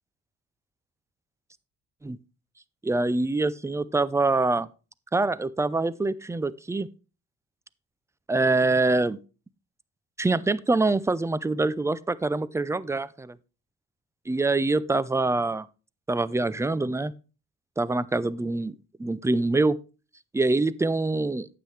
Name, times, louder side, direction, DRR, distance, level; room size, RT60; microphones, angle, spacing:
voice 1, 2.8-4.7 5.1-6.9 8.3-9.2 10.2-13.4 14.3-15.7 16.1-17.1 17.8-18.7 19.0-19.8 20.3-21.5, right 3 dB, 10° right, 0.5 m, -25 dB
9.4 x 7.9 x 3.3 m
cardioid pair, 85°, 31 cm